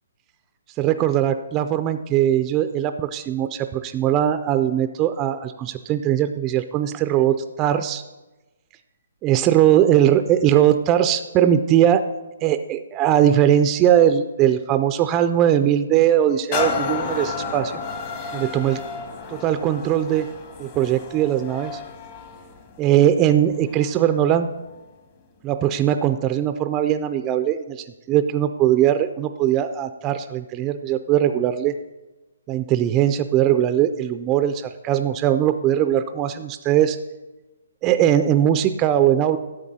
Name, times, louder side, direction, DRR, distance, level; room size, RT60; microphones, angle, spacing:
voice 1, 0.8-8.0 9.2-12.0 12.4-17.8 18.3-18.8 19.3-20.3 20.6-21.8 22.8-24.5 25.4-31.7 32.5-37.0 37.8-39.4, right 11 dB, 20° right, 10 dB, 0.3 m, -20 dB
sound 1, 16.5-24.1 24.7-24.8, left 5 dB, 30° left, 0.9 m, -32 dB
11.0 x 7.3 x 4.1 m, 1.1 s
hypercardioid pair, 155°, 0 cm